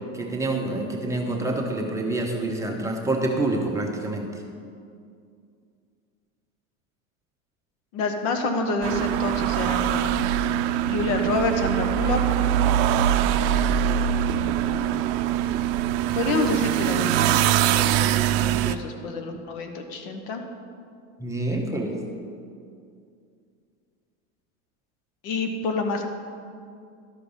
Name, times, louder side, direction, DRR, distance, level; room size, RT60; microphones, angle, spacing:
voice 1, 0.1-4.3 21.2-22.0, right 2 dB, 5° right, -1 dB, 1.0 m, -27 dB
voice 2, 7.9-10.3 10.9-12.2 14.3-15.1 16.1-20.4 25.2-26.1, left 3 dB, 70° left, 5 dB, 1.2 m, -28 dB
sound 1, 8.8-18.7, right 11 dB, 60° right, 0.5 m, -23 dB
12.5 x 5.1 x 5.4 m, 2.3 s
supercardioid pair, 115°, 41 cm